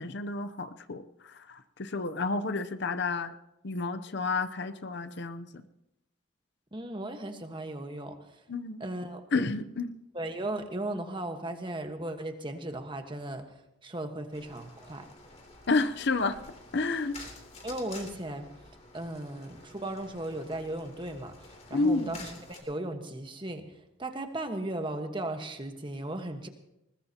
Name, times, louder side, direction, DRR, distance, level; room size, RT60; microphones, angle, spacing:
voice 1, 0.0-3.3 3.6-5.5 8.5-8.8 9.3-9.9 15.7-16.4 16.7-17.2 21.7-22.2, left 3 dB, 55° left, 11 dB, 0.7 m, -30 dB
voice 2, 6.7-8.4 8.8-9.2 10.1-15.1 17.2-17.3 17.6-18.5 18.9-26.5, right 1 dB, 25° right, 6 dB, 1.4 m, -36 dB
sound 1, 14.3-22.6, left 2 dB, 35° left, 3.0 m, -50 dB
20.5 x 20.5 x 2.9 m, 0.88 s
head